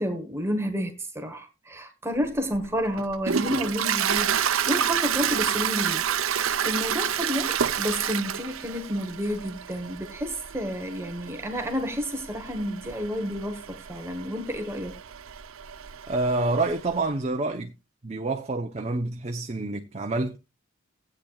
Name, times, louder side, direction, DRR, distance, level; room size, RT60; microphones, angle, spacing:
voice 1, 0.0-14.9, equal, 15° right, 1.3 m, -30 dB
Toilet flush, 2.2-17.0, right 8 dB, 80° right, 0.7 m, -29 dB
voice 2, 16.1-17.7 18.0-20.4, right 2 dB, 30° right, 0.8 m, -27 dB
16.5 x 8.7 x 2.4 m
head